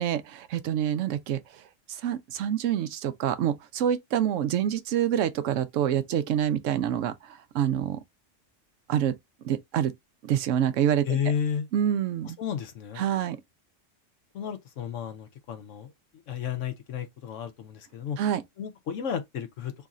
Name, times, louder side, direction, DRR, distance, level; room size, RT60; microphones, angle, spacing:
voice 1, 0.0-1.4 1.9-8.0 8.9-9.1 9.4-9.9 10.2-11.2 11.7-12.4 13.0-13.4 18.2-18.4, right 10 dB, 80° right, 1.0 m, -26 dB
voice 2, 11.0-11.7 12.4-13.0 14.3-15.9 16.3-18.2 18.6-19.7, left 8 dB, 80° left, 1.0 m, -32 dB
3.0 x 2.5 x 4.0 m
omnidirectional pair, 1.3 m